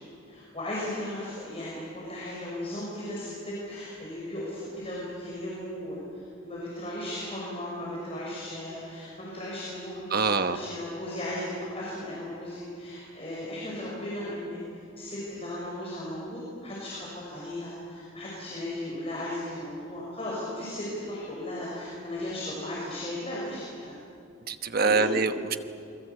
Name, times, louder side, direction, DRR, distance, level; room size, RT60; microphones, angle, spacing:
voice 1, 0.3-14.6 14.9-24.0 24.8-25.2, left 1 dB, 30° left, -6 dB, 6.3 m, -36 dB
voice 2, 10.1-10.6 24.5-25.6, right 4 dB, 50° right, 8 dB, 1.1 m, -25 dB
28.5 x 22.0 x 8.3 m, 2.6 s
head